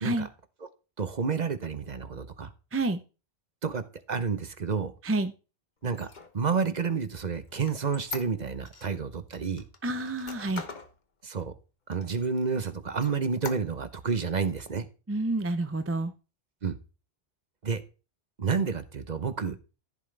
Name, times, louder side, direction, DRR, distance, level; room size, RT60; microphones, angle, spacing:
voice 1, 1.0-2.5 3.6-3.8 4.1-4.9 5.8-6.1 6.3-9.6 11.2-11.5 11.9-14.9 16.6-16.8 17.6-17.8 18.4-19.6, right 5 dB, 45° right, 12 dB, 0.9 m, -30 dB
Squeak, 5.9-8.9 9.3-10.9 11.4-11.5 11.9-12.6 12.9-14.0, left 4 dB, 45° left, 1.3 m, -42 dB
voice 2, 9.8-10.6 15.1-16.1, right 2 dB, 15° right, 9 dB, 0.5 m, -28 dB
14.5 x 7.5 x 3.3 m, 0.33 s
omnidirectional pair, 1.1 m